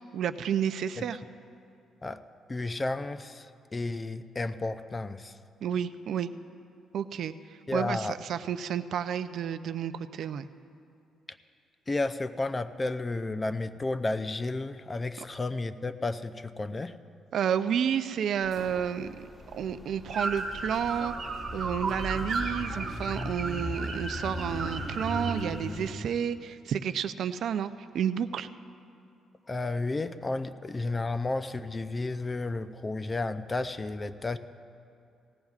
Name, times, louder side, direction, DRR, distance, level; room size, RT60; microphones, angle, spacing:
voice 1, 0.1-1.2 5.6-6.3 6.9-7.3 7.7-10.5 17.3-21.1 21.5-28.5, right 8 dB, 70° right, 12 dB, 0.4 m, -31 dB
voice 2, 2.5-3.5 3.7-5.3 7.7-8.2 11.9-17.0 29.5-34.4, left 2 dB, 25° left, 12 dB, 0.5 m, -32 dB
sound 1, 18.4-25.9, equal, 5° left, 1.3 m, -38 dB
sound 2, 20.1-25.4, right 3 dB, 45° right, 1.9 m, -35 dB
18.5 x 16.0 x 2.4 m, 2.4 s
cardioid pair, 90°, 0 cm